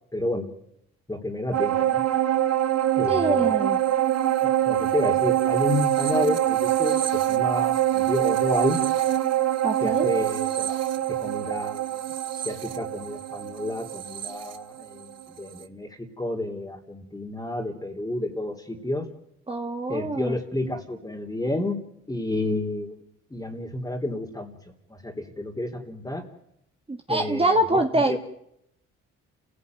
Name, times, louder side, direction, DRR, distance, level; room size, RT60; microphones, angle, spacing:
voice 1, 0.1-0.5 1.1-2.0 3.0-3.5 4.4-8.8 9.8-10.8 11.2-12.0 12.3-19.1 19.9-21.8 22.1-23.0 23.3-24.6 24.9-26.3 27.1-28.2, left 1 dB, 10° left, 0 dB, 3.5 m, -30 dB
sound 1, 1.5-15.2 15.6-15.7, right 12 dB, 55° right, 1.4 m, -24 dB
voice 2, 3.1-3.8 9.6-10.1 19.5-20.4 26.9-28.2, right 2 dB, 20° right, 4 dB, 1.8 m, -24 dB
29.5 x 16.5 x 9.5 m, 0.80 s
cardioid pair, 90°, 30 cm